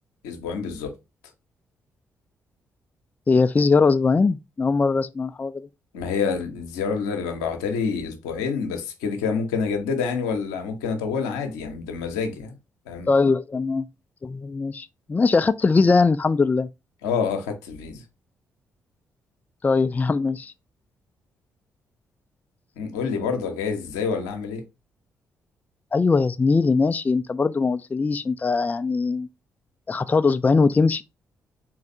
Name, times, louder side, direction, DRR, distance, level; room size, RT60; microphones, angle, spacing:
voice 1, 0.2-0.9 5.9-12.6 12.9-13.1 17.0-18.0 22.8-24.6, left 5 dB, 75° left, 0.7 m, -27 dB
voice 2, 3.3-5.7 13.1-13.9 14.2-16.7 19.6-20.5 25.9-29.3 29.9-31.0, left 4 dB, 20° left, 0.3 m, -21 dB
4.5 x 3.2 x 2.7 m
hypercardioid pair, 40°, 8 cm